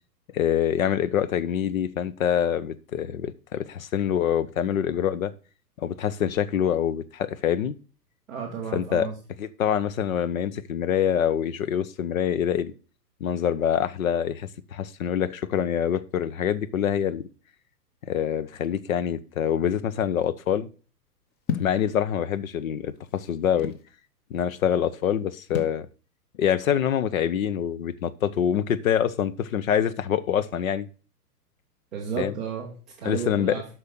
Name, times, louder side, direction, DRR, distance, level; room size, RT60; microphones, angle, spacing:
voice 1, 0.3-5.3 5.8-7.8 8.7-9.1 9.4-12.7 13.2-17.2 18.1-20.7 21.5-23.7 24.3-25.9 26.4-30.9 32.2-32.3 33.0-33.6, left 9 dB, 55° left, 16 dB, 0.9 m, -25 dB
voice 2, 8.3-9.1 31.9-33.7, right 6 dB, ahead, -11 dB, 0.3 m, -33 dB
sound 1, 21.5-21.8 22.7-23.9 25.5-25.8, left 6 dB, 20° left, 0.8 m, -31 dB
7.9 x 6.0 x 6.8 m, 0.38 s
figure-of-eight pair, 115°, 49 cm